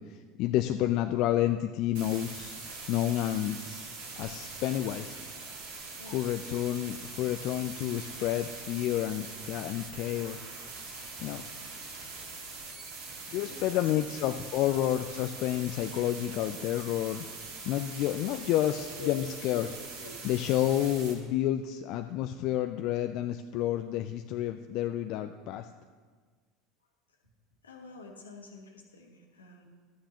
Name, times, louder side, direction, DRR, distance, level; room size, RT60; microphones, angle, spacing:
voice 1, 0.1-2.6 2.9-3.9 4.2-5.2 6.0-10.5 11.2-11.4 13.3-17.2 17.6-19.7 20.2-25.7, left 12 dB, 55° left, 7 dB, 0.4 m, -30 dB
sound 1, 1.9-21.1, right 3 dB, 65° right, 2.2 m, -43 dB
voice 2, 13.4-14.1 19.0-19.2 19.5-19.7 20.0-20.1 27.6-29.6, left 4 dB, 85° left, 1 dB, 1.5 m, -46 dB
12.5 x 8.9 x 2.9 m, 1.5 s
hypercardioid pair, 75°, 0 cm